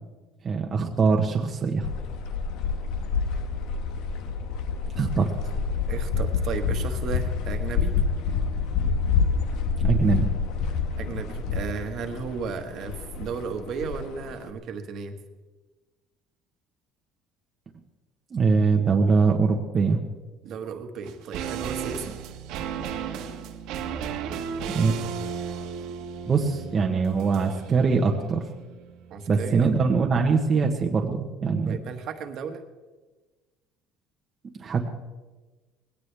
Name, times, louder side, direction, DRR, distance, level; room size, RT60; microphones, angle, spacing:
voice 1, 0.4-1.9 5.0-5.3 9.8-10.3 18.3-20.0 24.7-25.0 26.3-28.4 29.3-31.8 34.5-34.9, right 5 dB, 25° right, 1 dB, 1.0 m, -22 dB
sound 1, 1.8-14.5, left 5 dB, 75° left, 1.3 m, -28 dB
voice 2, 5.9-7.9 11.0-15.1 20.4-22.2 29.1-29.7 31.6-32.6, right 6 dB, 50° right, 6 dB, 1.4 m, -34 dB
sound 2, 21.0-30.4 30.7-30.8, right 7 dB, 75° right, 1.4 m, -35 dB
20.0 x 17.0 x 3.4 m, 1.2 s
cardioid pair, 155°, 0 cm